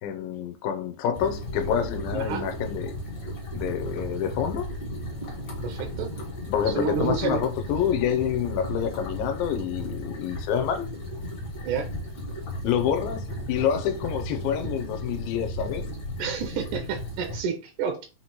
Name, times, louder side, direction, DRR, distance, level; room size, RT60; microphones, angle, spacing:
voice 1, 0.0-2.9 3.5-4.7 6.5-10.9 12.6-15.9, left 9 dB, 80° left, 2.3 m, -27 dB
sound 1, 1.1-17.4, equal, 45° left, 1.5 m, -35 dB
voice 2, 2.1-2.4 5.6-6.1 6.8-7.4 11.6-11.9 16.2-18.1, right 6 dB, 75° right, 1.9 m, -29 dB
5.7 x 2.9 x 2.9 m
omnidirectional pair, 4.1 m